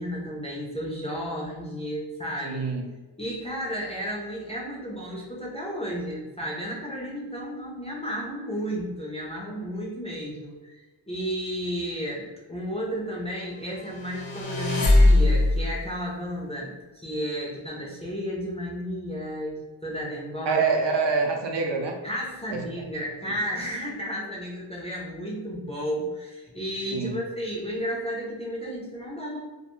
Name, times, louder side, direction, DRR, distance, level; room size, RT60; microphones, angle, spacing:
voice 1, 0.0-2.6 3.2-20.6 22.0-29.4, equal, 15° left, -5 dB, 0.4 m, -33 dB
voice 2, 2.4-2.8 20.5-22.0 26.9-27.2, right 4 dB, 65° right, 1 dB, 0.5 m, -25 dB
sound 1, 14.0-15.7, left 2 dB, 75° left, 0.8 m, -20 dB
2.3 x 2.2 x 2.9 m, 1.2 s
wide cardioid pair, 155°, 47 cm